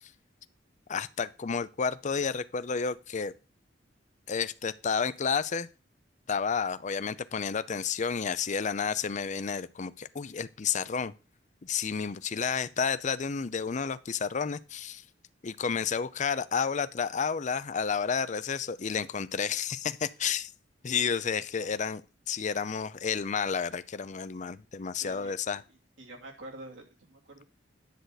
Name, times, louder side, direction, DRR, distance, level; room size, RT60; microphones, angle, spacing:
voice 1, 0.9-3.3 4.3-5.7 6.3-11.1 11.6-15.0 15.4-20.5 20.8-22.0 22.3-25.6, left 6 dB, 40° left, 0.5 m, -31 dB
voice 2, 25.0-25.3 26.0-27.4, right 1 dB, 85° right, 2.7 m, -47 dB
10.5 x 7.9 x 4.1 m
head